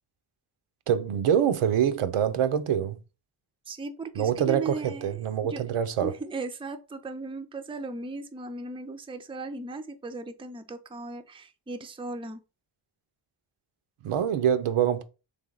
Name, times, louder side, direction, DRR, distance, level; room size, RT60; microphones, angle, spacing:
voice 1, 0.9-3.0 4.2-6.1 14.0-15.0, right 9 dB, 90° right, 0.6 m, -25 dB
voice 2, 3.7-5.2 5.4-12.4, right 3 dB, 10° right, 0.4 m, -37 dB
3.5 x 3.4 x 3.8 m
wide cardioid pair, 105°, 49 cm